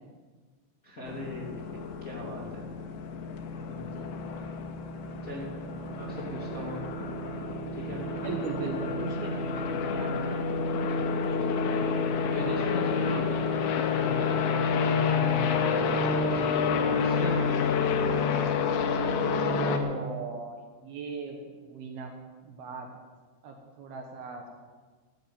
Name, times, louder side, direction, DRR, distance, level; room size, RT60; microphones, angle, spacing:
voice 1, 0.8-2.6 5.2-5.4 6.0-6.8 7.7-8.0 12.2-14.5 16.0-17.9, left 1 dB, 30° left, -4 dB, 1.8 m, -39 dB
sound 1, 1.1-19.8, left 5 dB, 75° left, 3.3 m, -29 dB
voice 2, 3.5-4.1 8.1-10.5 15.0-15.8 19.4-22.1 22.4-22.9 23.4-24.5, right 4 dB, 65° right, 3 dB, 2.8 m, -39 dB
13.5 x 9.9 x 8.9 m, 1.4 s
omnidirectional pair, 5.5 m